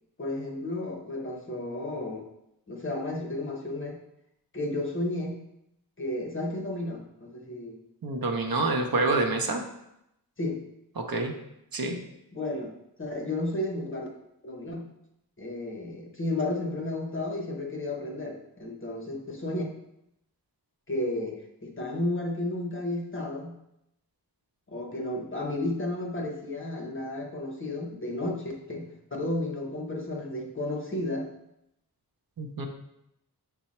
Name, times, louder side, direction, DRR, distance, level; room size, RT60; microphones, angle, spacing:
voice 1, 0.2-2.3 2.7-4.0 4.5-5.4 6.0-7.8 10.4-10.6 12.3-14.1 14.4-14.8 15.4-19.7 20.9-23.5 24.7-31.3, left 1 dB, 30° left, 1 dB, 0.8 m, -32 dB
voice 2, 8.0-9.6 11.0-11.3 11.7-12.0 32.4-32.7, right 3 dB, 60° right, 2 dB, 0.6 m, -27 dB
5.5 x 2.1 x 4.2 m, 0.81 s
wide cardioid pair, 60°, 39 cm